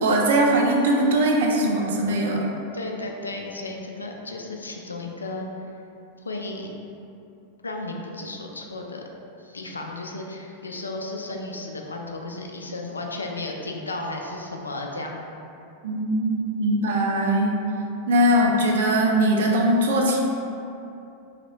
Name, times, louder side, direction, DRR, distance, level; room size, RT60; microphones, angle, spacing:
voice 1, 0.0-2.4 15.8-17.6 18.1-20.2, right 1 dB, 60° right, 0 dB, 0.4 m, -21 dB
voice 2, 2.7-5.5 6.2-6.7 7.6-9.0 9.4-15.2, left 2 dB, 75° left, 1 dB, 0.3 m, -34 dB
3.0 x 2.8 x 3.0 m, 2.7 s
figure-of-eight pair, 90°, 0 cm